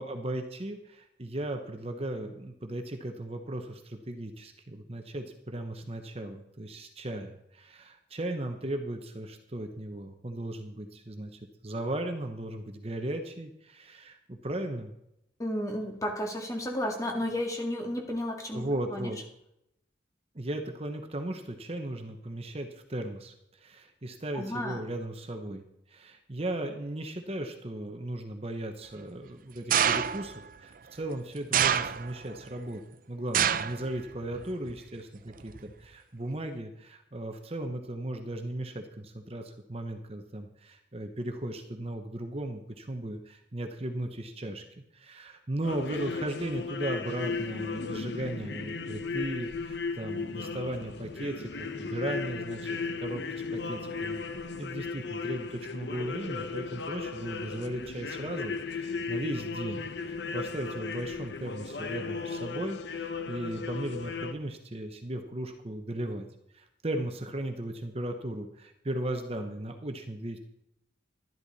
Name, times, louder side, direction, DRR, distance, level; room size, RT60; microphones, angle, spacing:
voice 1, 0.0-14.9 18.5-19.2 20.3-32.8 33.1-44.6 44.9-54.2 54.6-66.3 66.5-70.4, right 1 dB, 35° right, 5 dB, 1.0 m, -36 dB
voice 2, 15.4-18.6 18.9-19.1 24.3-24.8, left 1 dB, 20° left, 2 dB, 2.0 m, -32 dB
sound 1, 29.7-30.4 31.5-32.3 33.3-33.8 34.2-34.7 35.6-35.7, right 8 dB, 50° right, 0.5 m, -26 dB
sound 2, 45.6-64.3, left 4 dB, 75° left, 0.9 m, -36 dB
12.0 x 11.5 x 4.2 m, 0.80 s
head